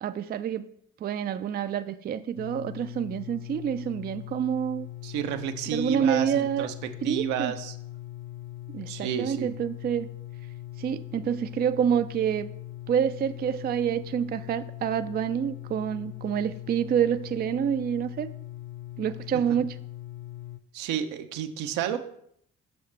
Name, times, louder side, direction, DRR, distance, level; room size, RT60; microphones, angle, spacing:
voice 1, 0.0-0.7 1.0-4.9 5.7-6.7 7.0-7.5 8.7-10.1 10.8-12.5 12.9-18.3 19.0-19.7, right 8 dB, 30° right, 11 dB, 0.4 m, -27 dB
sound 1, 2.4-20.6, left 14 dB, 40° left, 0.6 m, -41 dB
voice 2, 5.0-6.7 7.0-7.8 8.9-9.5 19.3-19.4 20.7-22.0, right 8 dB, 75° right, 6 dB, 0.7 m, -31 dB
6.8 x 6.3 x 3.3 m, 0.70 s
hypercardioid pair, 55°, 32 cm